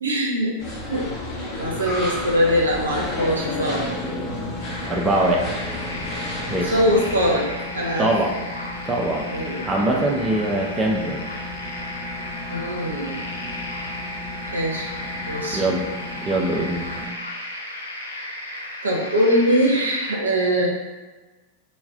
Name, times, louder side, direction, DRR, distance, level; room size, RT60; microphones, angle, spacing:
voice 1, 0.0-0.5 0.9-1.1 1.6-3.9 6.4-7.5 7.7-8.1 9.3-9.7 12.5-13.3 14.5-14.9 15.2-15.6 18.8-20.7, equal, 75° right, -1 dB, 0.5 m, -22 dB
sound 1, 0.6-7.4, left 1 dB, 40° left, 0.8 m, -31 dB
sound 2, 2.7-17.0, left 2 dB, 35° right, 1.0 m, -36 dB
sound 3, 4.6-20.1, left 1 dB, 80° left, 0.4 m, -35 dB
voice 2, 4.9-5.5 6.5-6.8 8.0-8.3 8.9-9.2 9.6-11.2 15.1-15.3 15.5-15.8 16.2-16.9, right 1 dB, 15° right, -1 dB, 0.4 m, -22 dB
2.3 x 2.1 x 3.6 m, 1.2 s
figure-of-eight pair, 90°, 0 cm